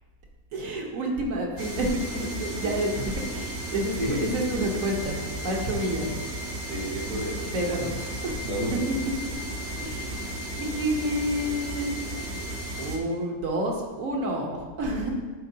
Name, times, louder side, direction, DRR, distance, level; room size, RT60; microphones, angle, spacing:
voice 1, 0.5-3.0 3.3-5.2 5.4-6.1 7.5-7.9 8.2-8.3 9.8-12.4 12.8-15.1, right 1 dB, 60° right, 0 dB, 1.4 m, -29 dB
sound 1, 1.6-13.0, right 1 dB, 35° right, 0.7 m, -34 dB
voice 2, 2.6-3.1 4.0-4.7 6.0-6.1 6.7-7.8 8.4-8.8, equal, 80° right, -5 dB, 2.5 m, -32 dB
11.5 x 4.6 x 2.8 m, 1.4 s
omnidirectional pair, 1.7 m